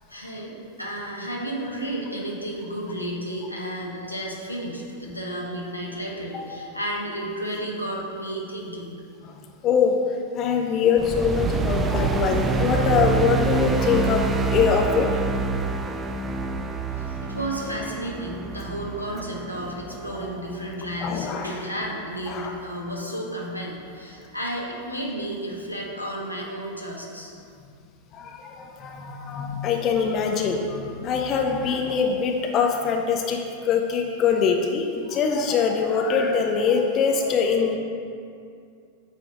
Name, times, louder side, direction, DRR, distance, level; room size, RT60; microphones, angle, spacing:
voice 1, 0.1-8.9 16.9-27.3, right 1 dB, 90° left, -3 dB, 1.1 m, -32 dB
voice 2, 9.6-9.9 10.3-15.1 21.0-21.5 22.3-22.5 28.1-37.8, left 6 dB, 35° left, 2 dB, 0.6 m, -23 dB
sound 1, 11.0-21.4, right 4 dB, 20° right, 0.4 m, -27 dB
8.9 x 3.4 x 6.1 m, 2.4 s
figure-of-eight pair, 90°, 0 cm